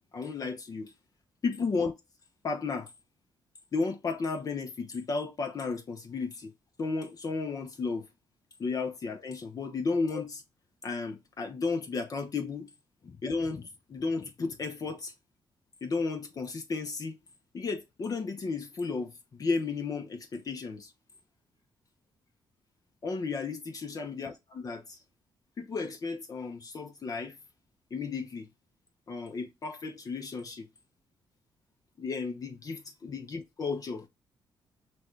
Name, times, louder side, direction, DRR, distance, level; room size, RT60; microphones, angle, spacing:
voice 1, 0.1-0.9 1.4-1.9 2.4-2.9 3.7-6.5 6.8-8.1 8.6-10.4 10.8-12.7 13.0-15.1 15.8-17.2 17.5-20.9 23.0-25.0 25.6-27.4 27.9-28.5 29.1-30.7 32.0-34.1, left 4 dB, 45° left, 0.8 m, -33 dB
6.0 x 2.3 x 3.2 m
supercardioid pair, 65°, 9 cm